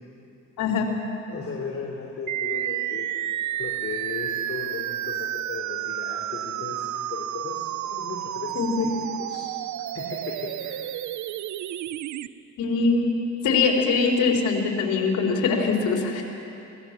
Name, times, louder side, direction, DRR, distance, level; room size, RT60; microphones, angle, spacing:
voice 1, 0.6-0.9 8.6-8.9 12.6-13.0 13.4-16.2, left 4 dB, 85° left, 0 dB, 3.8 m, -22 dB
voice 2, 1.3-3.3 3.6-8.9 9.3-9.5 9.9-10.8, left 4 dB, 45° left, -1 dB, 3.1 m, -36 dB
sound 1, 2.3-12.3, right 12 dB, 70° right, 0.7 m, -31 dB
24.0 x 18.5 x 7.4 m, 2.8 s
cardioid pair, 90°, 30 cm